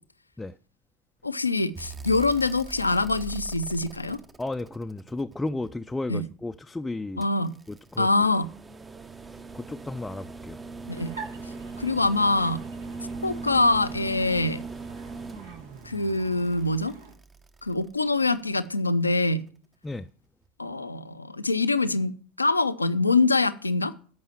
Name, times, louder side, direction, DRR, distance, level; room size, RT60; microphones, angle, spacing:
voice 1, 1.2-4.2 6.1-6.3 7.2-7.6 8.0-8.5 10.9-11.2 11.8-12.6 13.2-14.6 15.8-16.9 17.6-19.5 20.6-22.1 22.4-23.9, left 3 dB, 90° left, 0.6 m, -24 dB
sound 1, 1.8-5.9 7.2-18.4 20.0-20.1, right 3 dB, 20° right, 0.9 m, -41 dB
voice 2, 4.4-7.3 7.7-8.1 9.3-10.6 19.8-20.1, left 2 dB, 10° left, 0.5 m, -34 dB
sound 2, 10.9-17.1, right 5 dB, 75° right, 1.8 m, -46 dB
13.5 x 5.6 x 7.3 m
figure-of-eight pair, 70°, 0 cm